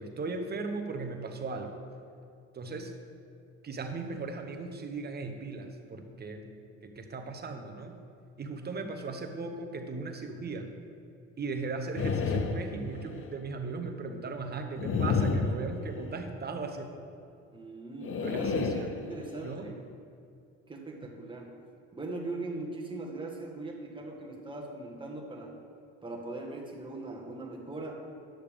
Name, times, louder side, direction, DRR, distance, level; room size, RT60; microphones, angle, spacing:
voice 1, 0.0-1.7 2.5-2.9 3.6-6.4 6.8-8.0 8.4-10.7 11.4-16.9 18.2-18.9 19.4-19.7, right 3 dB, 30° right, 5 dB, 1.0 m, -37 dB
sound 1, 12.0-13.3 14.8-16.3 18.0-19.5, left 4 dB, 45° left, 0.8 m, -31 dB
voice 2, 17.5-19.8 20.7-21.6 21.9-25.6 26.0-28.1, right 2 dB, 15° right, 0 dB, 1.5 m, -40 dB
10.5 x 6.6 x 3.6 m, 2.5 s
supercardioid pair, 90°, 31 cm